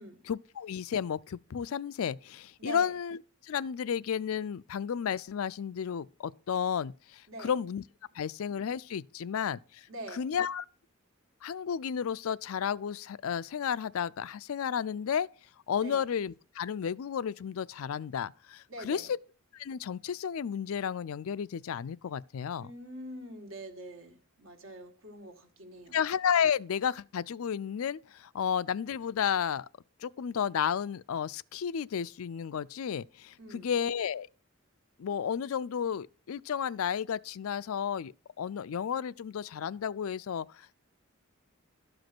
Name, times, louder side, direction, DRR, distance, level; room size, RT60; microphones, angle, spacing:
voice 1, 0.2-3.2 3.4-7.8 8.1-9.9 10.1-10.6 11.4-15.3 15.7-19.2 19.5-22.7 25.9-29.7 30.0-34.3 35.0-40.8, left 7 dB, 70° left, 0.4 m, -32 dB
voice 2, 2.6-2.9 7.3-7.5 9.9-10.3 15.8-16.0 18.7-19.1 22.6-26.0 33.4-33.7, right 1 dB, 65° right, 1.9 m, -44 dB
12.5 x 5.2 x 6.0 m
head